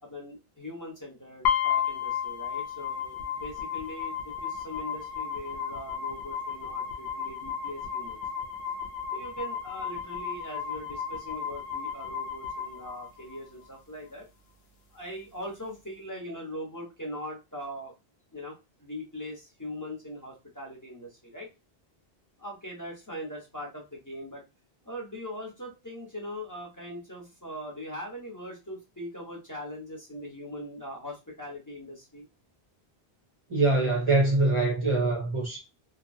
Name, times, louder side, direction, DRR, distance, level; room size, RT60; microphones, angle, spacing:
voice 1, 0.0-8.2 9.1-14.3 14.9-17.9 18.3-21.5 22.4-24.4 24.8-32.2, equal, 20° left, 0.9 m, -41 dB
sound 1, 1.4-13.5, left 8 dB, 75° left, 0.9 m, -33 dB
voice 2, 33.5-35.6, right 2 dB, 35° right, 0.6 m, -24 dB
2.8 x 2.2 x 2.5 m
omnidirectional pair, 1.1 m